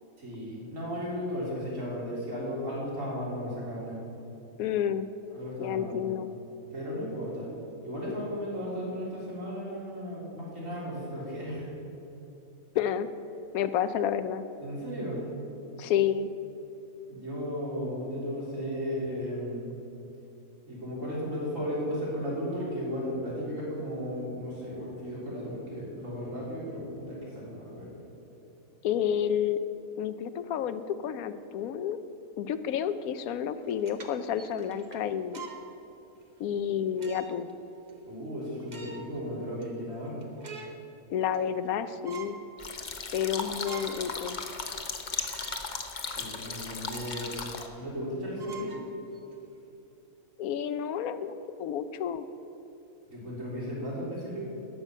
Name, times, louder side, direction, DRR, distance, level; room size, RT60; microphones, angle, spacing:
voice 1, 0.2-4.0 5.3-6.1 6.7-7.5 7.8-11.7 14.6-15.2 17.1-19.7 20.7-27.9 38.1-40.2 46.2-47.3 47.8-48.8 53.1-54.4, equal, 65° right, -6 dB, 3.8 m, -35 dB
voice 2, 4.6-5.1 5.6-6.3 12.7-13.1 13.5-14.4 15.8-16.3 28.8-29.6 30.0-32.0 32.4-35.4 36.4-37.5 41.1-42.4 43.1-44.4 50.4-52.3, left 9 dB, 85° left, 12 dB, 1.1 m, -30 dB
sound 1, 33.6-35.7 36.2-36.3 37.0-37.5 37.9-38.0 38.5-39.2 39.6-39.7 40.1-40.8 41.2-41.7 42.0-42.4 42.9-43.0 43.4-44.1 44.5-44.6 45.3-45.7 46.1-46.2 46.8-47.3 47.7-47.8 48.4-49.3, right 6 dB, 35° right, 1.0 m, -46 dB
sound 2, 42.6-47.7, left 4 dB, 40° left, 0.9 m, -36 dB
12.5 x 5.9 x 8.9 m, 2.9 s
omnidirectional pair, 1.5 m